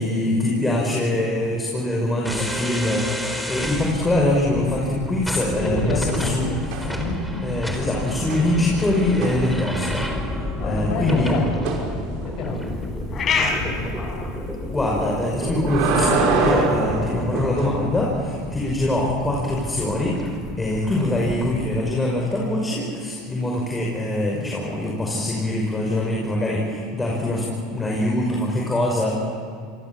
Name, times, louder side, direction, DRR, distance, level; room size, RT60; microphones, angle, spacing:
voice 1, 0.0-6.5 7.4-10.1 10.6-11.3 14.7-20.2 20.6-27.4 27.7-29.1, left 1 dB, 15° left, -2 dB, 5.6 m, -23 dB
sound 1, 2.2-22.0, equal, ahead, 4.4 m, -31 dB
voice 2, 5.6-6.6 7.0-7.3 10.6-11.5 12.2-12.7 13.3-14.0, left 3 dB, 60° left, 4 dB, 6.6 m, -28 dB
sound 2, 6.7-7.3 7.7-10.1 11.6-11.8 15.2-17.8 20.0-20.1, right 4 dB, 65° right, 5.8 m, -25 dB
sound 3, 12.5-26.6, left 5 dB, 35° left, 5.2 m, -35 dB
27.5 x 23.0 x 7.4 m, 2.3 s
supercardioid pair, 100°, 0 cm